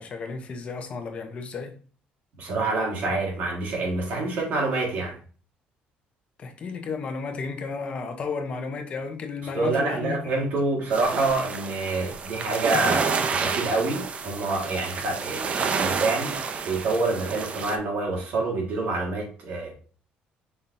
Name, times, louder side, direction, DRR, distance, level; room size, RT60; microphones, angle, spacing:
voice 1, 0.0-1.7 6.4-10.3, left 4 dB, 40° left, 0.8 m, -33 dB
voice 2, 2.4-5.2 9.5-19.7, right 2 dB, 65° right, 1.9 m, -27 dB
sound 1, 10.9-17.8, right 5 dB, 40° right, 0.5 m, -29 dB
5.5 x 3.5 x 2.6 m
cardioid pair, 150°, 3 cm